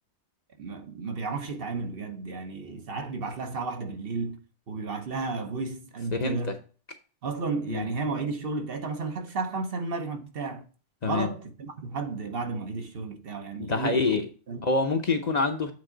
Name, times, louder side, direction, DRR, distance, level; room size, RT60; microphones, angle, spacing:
voice 1, 0.6-4.4 4.7-6.6 7.2-10.6 11.0-14.2 14.5-14.6, right 3 dB, 60° right, 1.1 m, -33 dB
voice 2, 6.1-6.5 7.7-7.9 11.0-11.3 13.6-14.3 14.6-15.7, left 3 dB, 40° left, 0.8 m, -26 dB
8.4 x 3.6 x 5.0 m
omnidirectional pair, 1.1 m